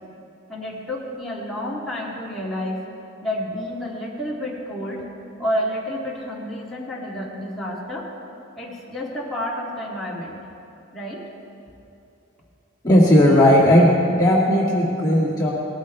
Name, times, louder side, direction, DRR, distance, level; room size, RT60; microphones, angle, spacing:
voice 1, 0.5-2.8 3.2-5.0 5.4-8.1 8.6-10.4 10.9-11.2, equal, ahead, -8 dB, 2.2 m, -29 dB
voice 2, 12.8-15.5, left 1 dB, 20° left, -7 dB, 2.0 m, -16 dB
20.0 x 14.0 x 3.2 m, 2.9 s
head